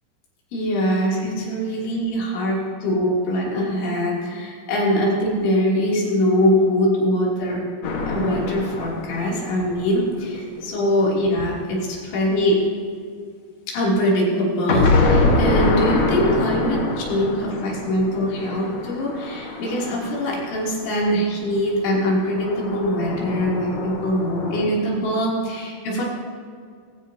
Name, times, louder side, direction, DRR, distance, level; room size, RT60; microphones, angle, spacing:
voice 1, 0.5-7.6 8.1-12.6 13.7-26.1, equal, 85° left, -4 dB, 5.4 m, -22 dB
sound 1, 7.8-10.6 14.7-20.9 22.2-24.6, left 2 dB, 60° left, 2.0 m, -24 dB
20.0 x 16.5 x 2.8 m, 2.2 s
omnidirectional pair, 5.2 m